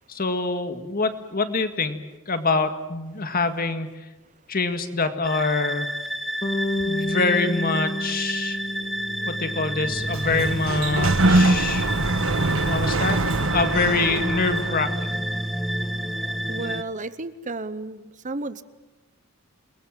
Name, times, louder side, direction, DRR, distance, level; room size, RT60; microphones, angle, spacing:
voice 1, 0.1-3.9 4.5-5.9 6.7-8.6 9.3-11.9 12.7-13.2 13.5-15.2, left 3 dB, 40° left, 9 dB, 1.9 m, -25 dB
sound 1, 5.2-16.8, equal, ahead, 1.0 m, -29 dB
voice 2, 6.3-7.1 8.7-8.9 13.8-14.3 16.5-18.6, right 2 dB, 35° right, 14 dB, 0.9 m, -35 dB
Bass guitar, 6.4-10.5, left 1 dB, 25° left, 2.2 m, -30 dB
Sliding door, 9.8-15.0, right 2 dB, 70° right, 1.3 m, -23 dB
28.5 x 21.5 x 7.6 m, 1.1 s
head